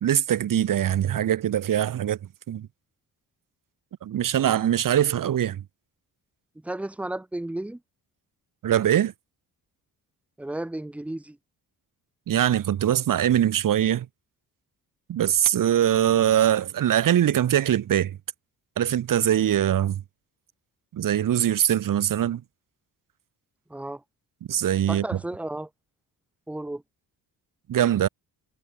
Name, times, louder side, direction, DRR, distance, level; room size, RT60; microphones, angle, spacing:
voice 1, 0.0-2.2 2.5-2.7 4.0-5.6 8.6-9.1 12.3-14.1 15.1-18.2 18.8-20.0 20.9-22.4 24.5-25.0 27.7-28.1, right 11 dB, 55° right, 1.1 m, -22 dB
voice 2, 6.6-7.8 10.4-11.4 23.7-24.0 24.9-25.7 26.5-26.8, right 1 dB, 5° right, 0.4 m, -33 dB
cardioid pair, 125°, 39 cm